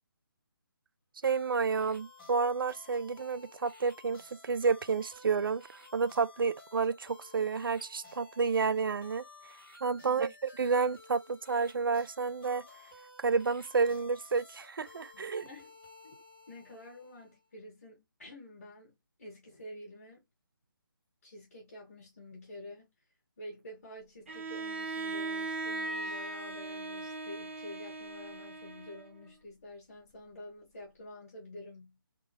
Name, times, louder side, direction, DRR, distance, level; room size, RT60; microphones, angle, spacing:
sound 1, 1.2-17.4, left 3 dB, ahead, 0.3 m, -55 dB
voice 1, 1.2-5.6 5.9-9.2 9.8-10.3 10.6-12.6 13.2-15.4, right 5 dB, 70° right, 0.4 m, -30 dB
voice 2, 15.1-15.7 16.0-16.1 16.5-20.2 21.2-22.9 23.4-32.0, left 1 dB, 40° left, 1.5 m, -49 dB
Bowed string instrument, 24.3-29.3, right 3 dB, 35° right, 0.7 m, -38 dB
3.7 x 2.2 x 2.9 m
hypercardioid pair, 180°, 12 cm